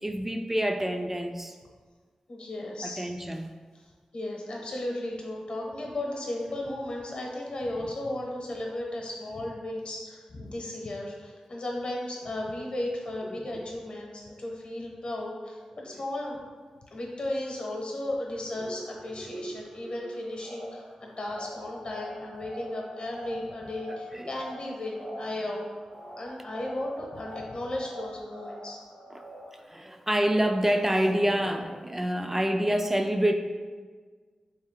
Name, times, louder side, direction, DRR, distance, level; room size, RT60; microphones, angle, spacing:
voice 1, 0.0-1.5 2.8-3.5 13.3-13.7 19.2-19.3 24.1-24.3 29.1-29.2 29.7-33.3, right 1 dB, 15° right, 5 dB, 0.4 m, -27 dB
voice 2, 2.3-3.1 4.1-16.4 16.9-25.7 26.2-28.8, left 1 dB, 60° left, 0 dB, 0.9 m, -35 dB
sound 1, 18.5-29.6, equal, 90° right, 1.4 m, -44 dB
3.6 x 3.3 x 3.6 m, 1.5 s
cardioid pair, 65°, 2 cm